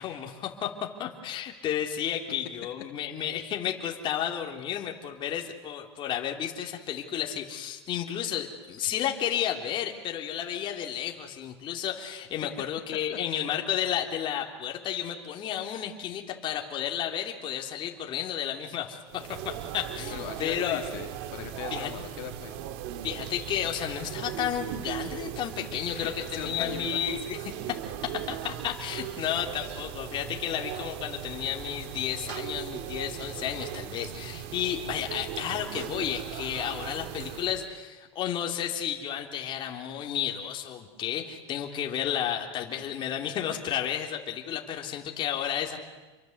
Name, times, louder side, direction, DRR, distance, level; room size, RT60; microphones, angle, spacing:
voice 1, 0.0-20.8 21.7-21.9 23.0-27.4 28.3-45.8, left 10 dB, 35° left, 2 dB, 3.5 m, -32 dB
sound 1, 19.1-37.7, right 11 dB, 60° right, 2.2 m, -38 dB
voice 2, 20.1-22.6 25.9-27.3 30.7-30.8 44.5-44.6, left 11 dB, 60° left, 4 dB, 2.8 m, -39 dB
29.0 x 23.5 x 8.1 m, 1.2 s
supercardioid pair, 140°, 14 cm